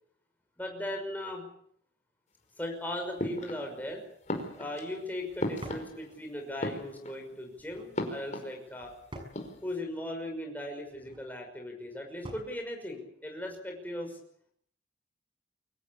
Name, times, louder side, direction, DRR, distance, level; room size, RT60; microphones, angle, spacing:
voice 1, 0.6-1.4 2.6-4.0 4.6-8.9 9.6-14.2, left 1 dB, 10° left, 1 dB, 5.9 m, -38 dB
sound 1, 3.2-3.9 4.3-6.2 6.5-7.3 7.9-8.9 9.2-9.8, left 1 dB, 40° left, 5.0 m, -37 dB
sound 2, 4.3-4.6 5.6-5.9 7.5-7.9 9.1-9.5 10.9-11.3 12.2-12.6, equal, 30° right, 6.4 m, -46 dB
24.5 x 18.0 x 8.6 m, 0.66 s
head